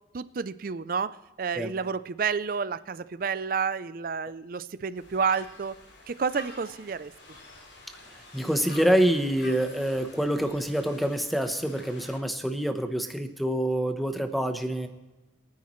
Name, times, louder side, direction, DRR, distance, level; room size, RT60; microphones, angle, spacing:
voice 1, 0.1-5.7 6.1-7.1, right 5 dB, 50° right, 15 dB, 0.4 m, -30 dB
sound 1, 4.9-12.2, left 2 dB, 75° left, 3.3 m, -48 dB
voice 2, 8.3-14.9, right 1 dB, ahead, 6 dB, 0.9 m, -26 dB
23.5 x 9.6 x 3.1 m, 1.1 s
head